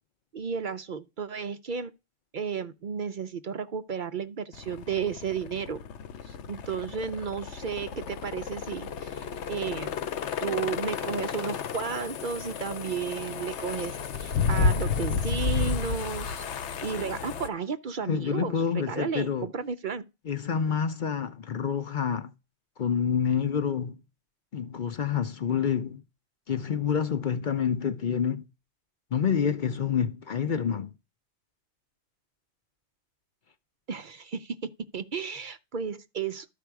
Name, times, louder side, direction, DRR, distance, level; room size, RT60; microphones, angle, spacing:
voice 1, 0.3-1.9 2.3-5.8 6.3-10.0 10.4-16.4 16.8-20.0 33.9-34.6 34.9-36.5, right 6 dB, 55° right, 0.7 m, -33 dB
sound 1, 4.5-17.5, left 5 dB, 85° left, 1.0 m, -32 dB
voice 2, 18.0-19.5 20.3-22.3 22.8-24.0 24.5-26.0 26.5-28.5 29.1-30.9, left 7 dB, 50° left, 0.7 m, -28 dB
13.0 x 5.0 x 4.7 m
omnidirectional pair, 1.2 m